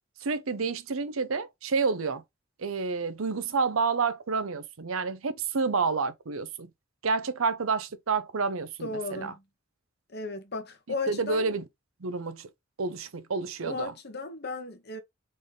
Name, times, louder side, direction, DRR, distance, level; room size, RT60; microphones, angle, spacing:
voice 1, 0.2-2.2 2.6-6.7 7.0-9.3 11.1-11.6 12.0-12.5 12.8-13.9, right 4 dB, 85° right, 0.7 m, -29 dB
voice 2, 8.8-9.4 10.1-11.5 13.6-15.0, left 3 dB, 50° left, 1.1 m, -35 dB
4.1 x 3.6 x 3.4 m
head